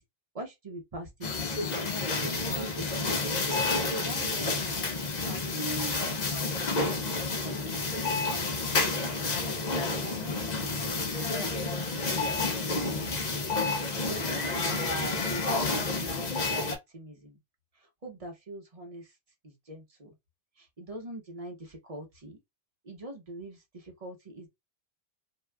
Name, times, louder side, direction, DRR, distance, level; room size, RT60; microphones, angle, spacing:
voice 1, 0.3-4.9 5.3-6.0 6.3-6.6 7.4-8.5 8.8-9.4 10.0-11.0 11.4-13.0 13.9-17.4 18.0-19.1 19.4-20.1 20.6-22.4 22.8-24.5, right 1 dB, 35° right, 0.9 m, -44 dB
sound 1, 1.2-16.8, left 3 dB, 45° left, 0.8 m, -30 dB
2.8 x 2.3 x 3.3 m
omnidirectional pair, 1.2 m